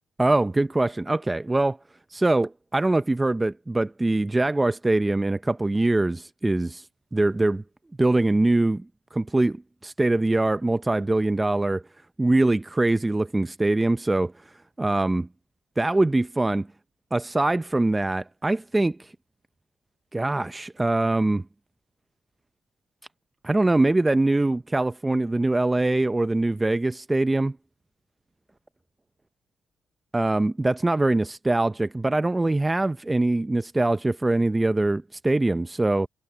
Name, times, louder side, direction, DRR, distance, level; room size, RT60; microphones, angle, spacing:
voice 1, 0.2-1.8 2.1-6.8 7.1-7.6 8.0-8.8 9.1-11.8 12.2-14.3 14.8-15.3 15.8-16.7 17.1-19.1 20.1-21.4 23.4-27.6 30.1-36.1, right 2 dB, 15° right, 0.5 m, -23 dB
cardioid pair, 90°, 0 cm